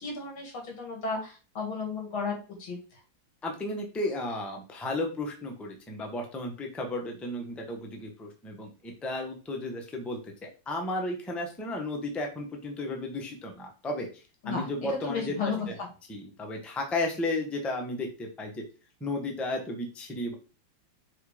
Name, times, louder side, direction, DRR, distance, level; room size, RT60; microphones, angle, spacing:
voice 1, 0.0-2.8 14.4-15.6, left 4 dB, 90° left, -1 dB, 3.1 m, -34 dB
voice 2, 3.4-14.1 14.4-15.8 16.1-18.6 19.0-20.3, left 2 dB, ahead, 2 dB, 0.7 m, -34 dB
4.7 x 4.1 x 5.0 m, 0.34 s
omnidirectional pair, 2.2 m